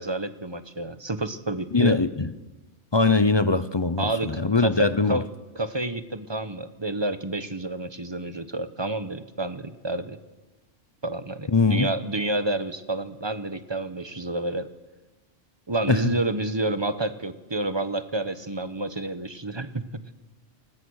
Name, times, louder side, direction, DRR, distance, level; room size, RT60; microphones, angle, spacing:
voice 1, 0.0-2.0 4.0-5.2 5.6-10.2 11.0-14.7 15.7-19.8, right 2 dB, 20° right, 11 dB, 1.1 m, -29 dB
voice 2, 1.7-2.3 2.9-5.2 11.5-11.9 15.9-16.1, left 3 dB, 25° left, 13 dB, 0.6 m, -21 dB
29.0 x 20.0 x 6.5 m, 1.1 s
omnidirectional pair, 1.3 m